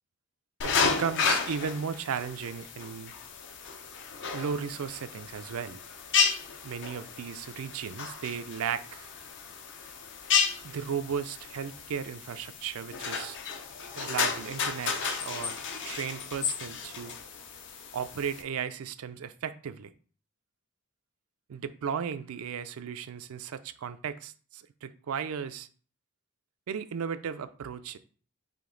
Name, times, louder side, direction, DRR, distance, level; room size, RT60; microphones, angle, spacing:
sound 1, 0.6-18.4, left 6 dB, 55° left, 0.5 m, -33 dB
voice 1, 0.6-3.1 4.3-5.8 6.6-9.1 10.6-13.4 14.0-17.2 17.9-19.9 21.5-25.7 26.7-28.0, right 7 dB, 75° right, 0.4 m, -35 dB
5.1 x 2.7 x 3.8 m
head